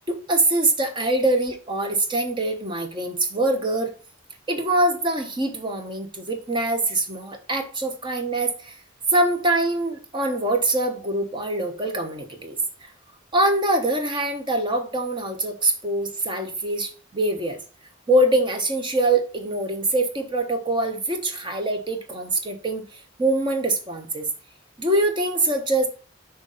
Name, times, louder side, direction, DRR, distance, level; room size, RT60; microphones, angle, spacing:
voice 1, 0.1-3.9 4.5-8.8 9.1-12.9 13.3-17.6 18.1-24.3 24.8-25.9, right 2 dB, 25° right, 5 dB, 1.1 m, -24 dB
6.1 x 3.7 x 5.5 m, 0.37 s
head